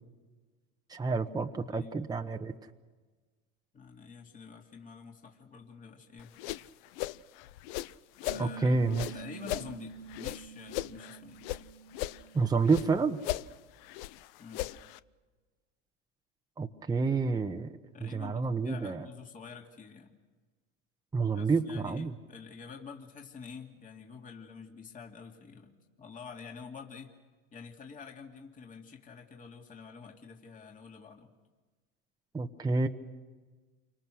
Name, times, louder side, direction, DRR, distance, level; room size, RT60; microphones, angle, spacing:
voice 1, 0.9-2.5 8.4-9.1 12.3-13.2 16.6-17.7 18.0-19.1 21.1-22.1 32.3-32.9, right 4 dB, 15° right, 5 dB, 1.1 m, -29 dB
voice 2, 3.7-6.3 8.2-8.8 9.1-11.4 14.4-14.7 17.9-20.1 21.3-27.1 27.5-31.3, left 5 dB, 25° left, 1 dB, 2.4 m, -48 dB
sound 1, 6.2-8.5 8.9-11.6 11.9-12.9 13.2-15.0, left 15 dB, 70° left, 0.7 m, -38 dB
Piano, 8.3-13.4, right 7 dB, 75° right, 1.4 m, -48 dB
28.5 x 25.0 x 6.4 m, 1.4 s
supercardioid pair, 105°, 30 cm